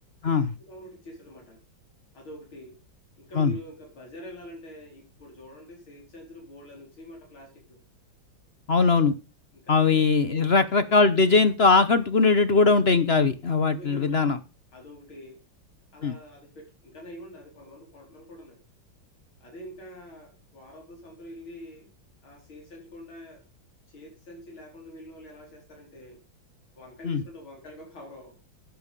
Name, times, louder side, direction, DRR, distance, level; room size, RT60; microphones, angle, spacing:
voice 1, 0.3-1.6 2.1-2.8 3.2-7.8 9.5-10.0 10.3-10.6 13.7-14.4 14.7-15.4 15.9-18.6 19.4-21.9 22.2-23.4 23.9-26.2 26.7-28.4, left 1 dB, 90° left, 0 dB, 5.3 m, -45 dB
voice 2, 8.7-9.1 9.7-14.4 16.0-16.1 27.0-27.2, left 4 dB, 45° left, 12 dB, 0.9 m, -20 dB
12.5 x 9.0 x 5.4 m, 0.31 s
omnidirectional pair, 2.2 m